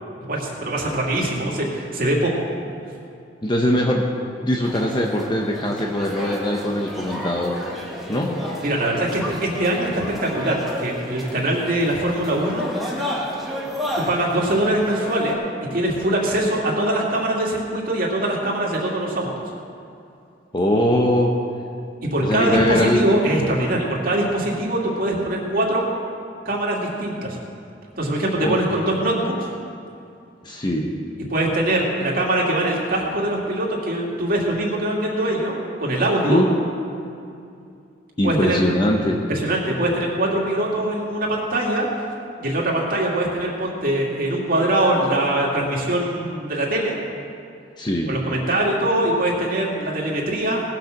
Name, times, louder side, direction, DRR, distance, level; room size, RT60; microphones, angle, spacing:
voice 1, 0.3-2.3 8.6-12.7 14.0-15.4 15.7-19.3 22.1-25.9 26.4-27.4 28.0-29.5 31.3-36.4 38.2-38.6 39.3-41.9 42.4-47.0 48.1-50.6, right 1 dB, 55° right, -2 dB, 2.5 m, -22 dB
voice 2, 3.4-4.1 4.4-7.6 8.1-8.5 20.5-21.3 22.2-23.1 28.4-28.6 30.4-31.0 36.3-36.5 38.2-39.2 47.8-48.2, left 1 dB, 25° left, 0 dB, 0.9 m, -21 dB
sound 1, 4.6-15.3, equal, ahead, 1.9 m, -32 dB
18.5 x 6.6 x 6.6 m, 2.5 s
head